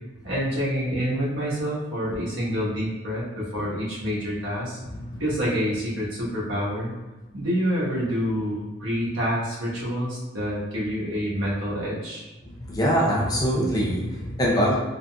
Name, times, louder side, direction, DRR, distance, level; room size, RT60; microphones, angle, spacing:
voice 1, 0.2-4.8 5.2-6.9 7.3-12.3, equal, 70° right, -7 dB, 1.1 m, -27 dB
voice 2, 12.4-14.7, equal, 20° left, -4 dB, 0.5 m, -23 dB
3.8 x 2.4 x 2.2 m, 1.1 s
head